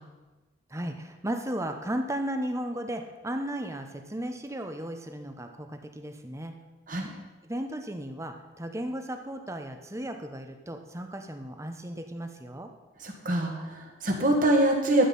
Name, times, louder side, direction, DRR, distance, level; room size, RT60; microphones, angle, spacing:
voice 1, 0.7-6.5 7.4-12.7, right 1 dB, 15° right, 6 dB, 0.8 m, -35 dB
voice 2, 13.0-15.1, right 1 dB, 40° right, 1 dB, 1.8 m, -24 dB
12.5 x 8.4 x 5.4 m, 1.2 s
head